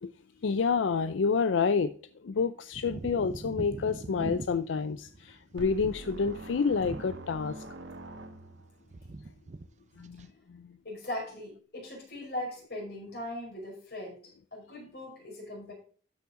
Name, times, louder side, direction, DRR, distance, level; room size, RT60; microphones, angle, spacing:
voice 1, 0.4-2.0 2.2-7.7 10.0-10.8, left 5 dB, 85° left, 0.5 m, -29 dB
sound 1, 2.7-7.7 8.0-8.6 8.9-9.7 9.9-10.3, right 2 dB, 40° right, 0.5 m, -42 dB
sound 2, 5.6-8.8, right 2 dB, 80° right, 1.3 m, -44 dB
voice 2, 10.8-14.2 14.5-15.7, left 1 dB, 60° left, 5.1 m, -39 dB
12.5 x 5.7 x 3.7 m
head